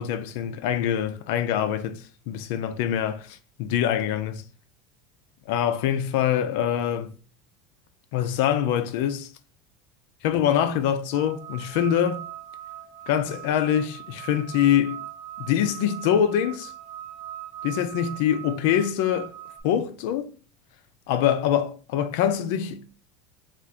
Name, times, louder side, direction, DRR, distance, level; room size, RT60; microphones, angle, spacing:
voice 1, 0.0-4.4 5.5-7.1 8.1-9.3 10.2-12.2 13.1-15.0 15.4-16.7 17.6-19.3 19.6-20.3 21.1-22.9, left 10 dB, 60° left, 0.5 m, -24 dB
sound 1, 11.1-19.6, right 12 dB, 10° right, 1.3 m, -40 dB
3.7 x 2.5 x 4.4 m
supercardioid pair, 170°, 0 cm